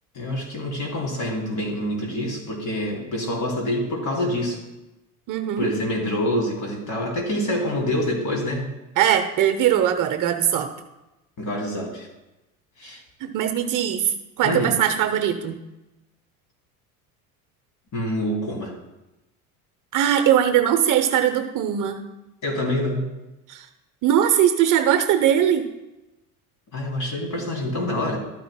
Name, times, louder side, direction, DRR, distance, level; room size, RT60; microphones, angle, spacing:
voice 1, 0.1-4.6 5.6-8.7 11.4-12.1 12.8-13.0 14.4-14.7 17.9-18.7 22.4-23.1 26.7-28.2, left 1 dB, 45° left, 0 dB, 3.1 m, -26 dB
voice 2, 5.3-5.7 9.0-10.7 13.2-15.6 19.9-22.0 23.5-23.6 24.0-25.7, right 10 dB, 45° right, 7 dB, 0.8 m, -20 dB
12.5 x 9.1 x 2.2 m, 0.98 s
hypercardioid pair, 80°, 43 cm